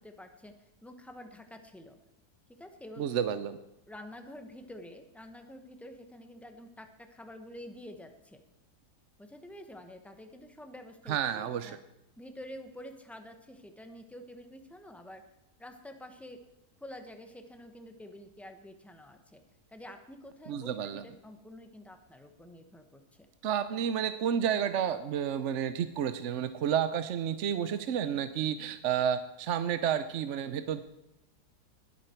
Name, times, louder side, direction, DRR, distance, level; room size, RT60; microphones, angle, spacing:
voice 1, 0.0-2.0 2.6-3.1 3.9-8.4 9.2-11.8 12.2-15.2 15.6-16.4 16.8-19.4 19.7-23.3, left 1 dB, ahead, 6 dB, 0.9 m, -48 dB
voice 2, 3.0-3.6 11.1-11.8 20.5-21.0 23.4-30.8, right 9 dB, 60° right, 11 dB, 0.8 m, -31 dB
20.0 x 8.4 x 4.5 m, 0.88 s
omnidirectional pair, 1.7 m